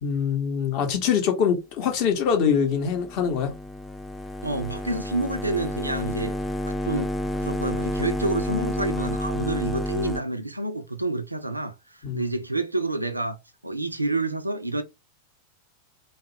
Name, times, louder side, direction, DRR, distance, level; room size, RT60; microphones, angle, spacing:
voice 1, 0.0-3.5 12.0-12.2, left 7 dB, 45° left, 0.7 m, -24 dB
sound 1, 2.5-10.2, left 1 dB, 5° left, 0.3 m, -30 dB
voice 2, 4.4-6.4 6.6-7.1 7.4-13.4 13.6-14.8, right 2 dB, 85° right, 0.3 m, -28 dB
2.3 x 2.0 x 2.7 m
figure-of-eight pair, 90°, 0 cm